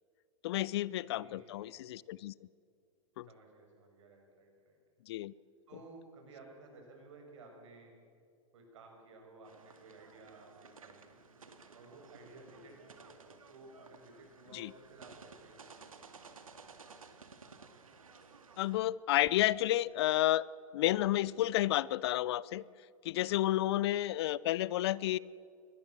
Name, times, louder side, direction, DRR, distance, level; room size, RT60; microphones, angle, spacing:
voice 1, 0.4-2.3 3.2-3.3 5.1-5.3 14.5-14.7 18.6-20.5 20.7-22.6 23.0-25.2, left 15 dB, 50° left, 22 dB, 0.5 m, -31 dB
voice 2, 1.0-2.0 3.2-4.8 5.7-7.9 8.5-11.2 11.7-16.2 23.3-23.6, right 3 dB, 60° right, 2 dB, 7.4 m, -56 dB
sound 1, 9.4-18.8, right 5 dB, 80° right, 2.1 m, -56 dB
Fireworks, 19.2-21.6, right 6 dB, 30° right, 2.4 m, -61 dB
23.5 x 19.0 x 7.4 m, 2.3 s
hypercardioid pair, 110°, 17 cm